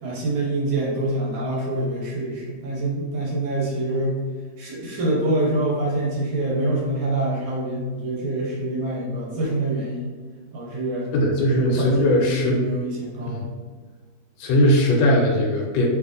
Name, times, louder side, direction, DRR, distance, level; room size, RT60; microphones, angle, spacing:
voice 1, 0.0-4.2 4.6-10.1 10.5-11.1 11.6-13.5, right 1 dB, 85° right, -4 dB, 1.8 m, -25 dB
voice 2, 11.1-12.6 13.3-13.4 14.4-15.9, equal, 85° left, 0 dB, 1.4 m, -19 dB
3.3 x 3.1 x 2.5 m, 1.5 s
omnidirectional pair, 2.1 m